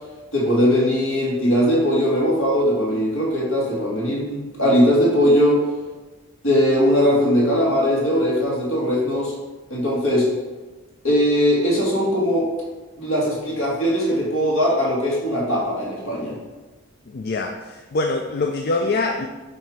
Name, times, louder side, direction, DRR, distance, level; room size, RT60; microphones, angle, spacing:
voice 1, 0.3-5.6 6.4-9.3 9.7-10.3 11.0-12.5 13.0-16.4, equal, 65° left, -4 dB, 2.1 m, -20 dB
voice 2, 17.1-19.3, left 3 dB, 45° left, 3 dB, 0.4 m, -24 dB
8.6 x 2.9 x 4.7 m, 1.2 s
head